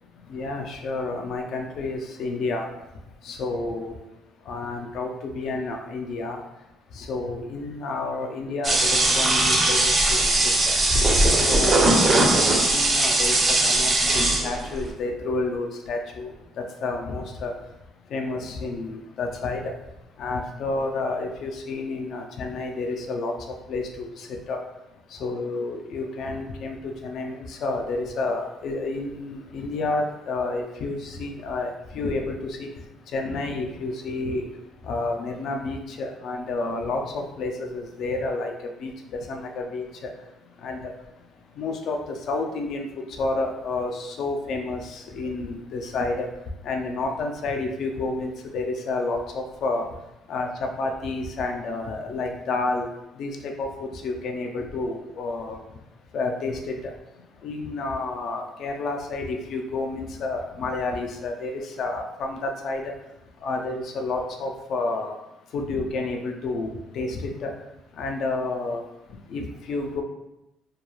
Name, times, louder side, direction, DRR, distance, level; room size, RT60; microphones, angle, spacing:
voice 1, 0.3-2.7 3.2-3.9 4.5-6.4 6.9-10.7 11.3-13.4 13.6-16.3 16.6-17.5 18.1-19.7 20.2-24.6 25.2-26.8 27.0-32.7 33.1-34.4 34.8-38.5 38.8-40.1 40.6-40.9 41.6-42.9 43.2-46.3 46.7-49.9 50.3-52.9 53.2-55.6 56.1-56.7 57.4-62.9 63.4-65.1 65.5-67.5 68.0-68.8 69.3-70.0, left 3 dB, 50° left, 3 dB, 0.4 m, -30 dB
sound 1, 8.6-14.8, right 2 dB, 25° right, 0.4 m, -20 dB
2.3 x 2.2 x 3.0 m, 0.90 s
cardioid pair, 170°, 0 cm